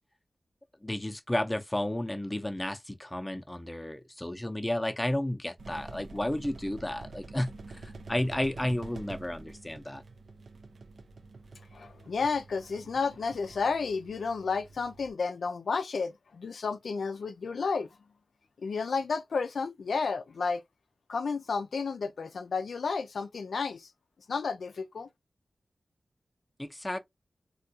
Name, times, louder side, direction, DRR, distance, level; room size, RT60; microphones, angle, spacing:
voice 1, 0.8-10.0 26.6-27.0, left 1 dB, 15° left, 0.5 m, -32 dB
sound 1, 5.6-15.1, right 3 dB, 70° right, 0.4 m, -47 dB
voice 2, 11.7-17.9 18.6-20.6 21.1-23.9 24.3-25.1, left 4 dB, 85° left, 0.3 m, -32 dB
3.5 x 2.2 x 2.7 m
cardioid pair, 55°, 0 cm